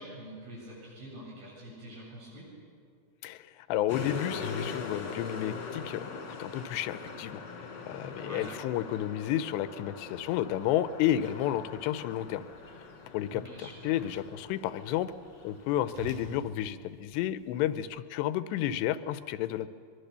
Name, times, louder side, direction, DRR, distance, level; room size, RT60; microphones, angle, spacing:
voice 1, 0.0-2.5 8.2-8.5 13.3-14.0, right 1 dB, 65° right, -5 dB, 9.6 m, -46 dB
voice 2, 3.2-7.4 7.9-12.5 13.1-15.1 15.4-19.7, left 12 dB, 85° left, 14 dB, 2.9 m, -31 dB
sound 1, 3.9-16.4, left 4 dB, 35° left, 2.3 m, -42 dB
Whoosh swoosh swish, 10.1-17.8, right 2 dB, 85° right, 5.1 m, -52 dB
24.0 x 22.5 x 6.8 m, 2.3 s
omnidirectional pair, 5.0 m